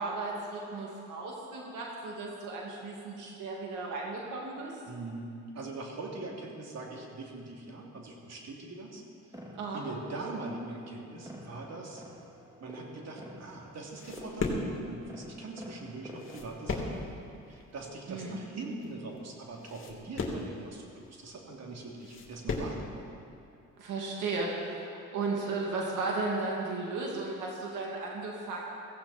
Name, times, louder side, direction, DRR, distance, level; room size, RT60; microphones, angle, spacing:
voice 1, 0.0-4.7 9.5-9.8 18.1-18.4 23.8-28.6, right 3 dB, 85° right, -2 dB, 2.4 m, -35 dB
voice 2, 4.9-5.3 5.5-9.0 9.7-12.0 12.6-23.1, right 2 dB, 60° right, -1 dB, 3.0 m, -42 dB
sound 1, 9.3-17.0, equal, 10° right, 2.1 m, -50 dB
sound 2, 13.3-22.9, left 3 dB, 45° left, 2.6 m, -37 dB
16.5 x 16.0 x 4.4 m, 2.6 s
cardioid pair, 90°, 30 cm